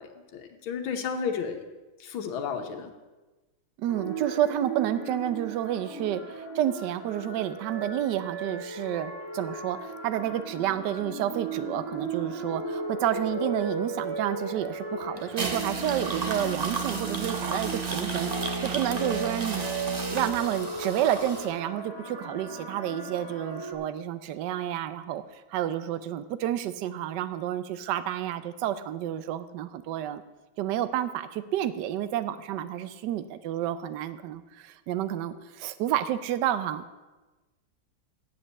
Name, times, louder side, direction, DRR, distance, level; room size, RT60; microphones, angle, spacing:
voice 1, 0.0-1.6 2.0-2.9, left 6 dB, 70° left, 6 dB, 1.8 m, -33 dB
voice 2, 3.8-18.3 18.6-30.2 30.6-36.8, right 11 dB, 70° right, 13 dB, 1.1 m, -30 dB
sound 1, 3.9-23.7, right 2 dB, 10° right, 3.5 m, -36 dB
sound 2, 15.2-21.5, right 4 dB, 45° right, 0.5 m, -32 dB
8.7 x 7.6 x 8.0 m, 1.2 s
omnidirectional pair, 2.3 m